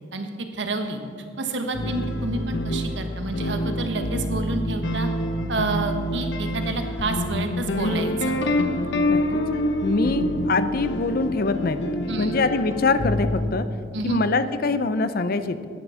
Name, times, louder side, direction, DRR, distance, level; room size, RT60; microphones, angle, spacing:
voice 1, 0.1-1.0 1.4-5.1 5.5-8.4 12.1-12.4 13.9-14.2, right 2 dB, 80° right, 6 dB, 1.2 m, -29 dB
sound 1, 1.7-13.5, left 1 dB, 90° left, 0.8 m, -26 dB
voice 2, 9.8-11.8 12.2-13.7 14.0-15.6, left 3 dB, 55° left, 12 dB, 0.6 m, -24 dB
9.8 x 9.0 x 6.3 m, 2.3 s
head